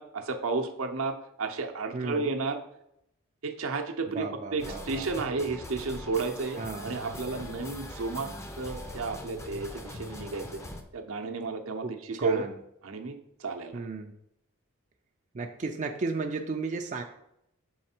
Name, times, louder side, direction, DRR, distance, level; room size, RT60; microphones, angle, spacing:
voice 1, 0.0-2.6 3.4-8.3 8.6-10.6 10.9-12.4 12.8-13.9, right 4 dB, 70° right, 4 dB, 0.7 m, -32 dB
voice 2, 1.9-2.3 4.1-5.1 6.6-6.9 11.8-12.5 13.7-14.1 15.3-17.0, right 4 dB, 35° right, 3 dB, 0.4 m, -34 dB
sound 1, 4.6-10.8, left 1 dB, 15° left, 0.5 m, -41 dB
6.4 x 4.1 x 4.4 m, 0.78 s
head